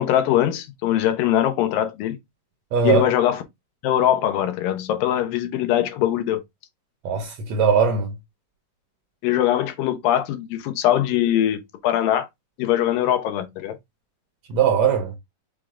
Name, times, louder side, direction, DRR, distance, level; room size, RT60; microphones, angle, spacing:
voice 1, 0.0-2.2 2.8-3.4 3.8-6.4 9.2-12.3 12.6-13.8, left 11 dB, 85° left, 2.4 m, -22 dB
voice 2, 2.7-3.1 7.0-8.1 14.5-15.1, right 6 dB, 80° right, 1.5 m, -20 dB
6.3 x 2.1 x 3.5 m
omnidirectional pair, 3.9 m